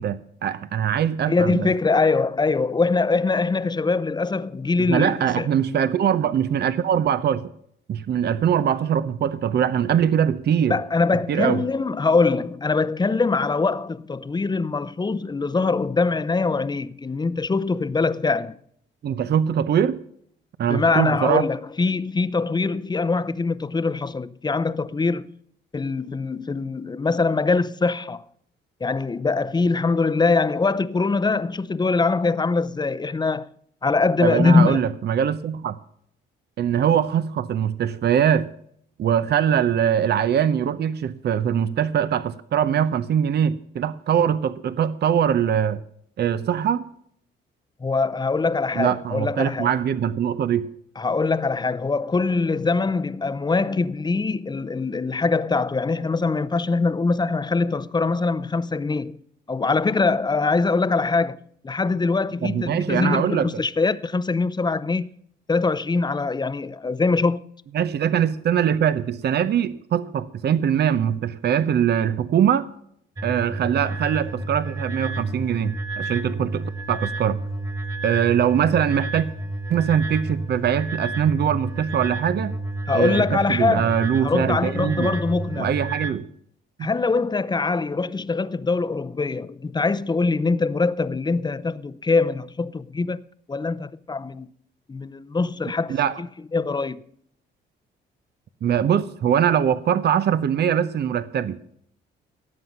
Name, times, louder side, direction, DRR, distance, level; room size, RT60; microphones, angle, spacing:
voice 1, 0.0-1.7 4.9-7.5 7.9-10.8 11.3-11.6 19.0-20.0 20.6-21.5 34.2-35.8 36.6-38.5 39.0-45.8 46.2-46.9 48.8-50.7 62.4-63.5 67.7-72.7 73.2-77.4 78.0-79.3 79.7-82.5 82.9-85.1 85.6-86.3 86.8-86.9 95.9-96.2 98.6-101.7, right 9 dB, 55° right, 0.8 m, -22 dB
voice 2, 1.3-5.5 10.7-18.6 20.7-25.2 25.7-28.2 28.8-33.5 33.8-34.8 47.8-49.7 51.0-59.2 59.5-61.4 61.6-65.1 65.5-67.4 82.9-85.7 86.8-93.2 93.5-94.5 94.9-97.0, left 4 dB, 20° left, 0.7 m, -23 dB
sound 1, 73.2-86.1, right 2 dB, 20° right, 1.9 m, -30 dB
17.5 x 7.7 x 5.5 m
cardioid pair, 90°, 20 cm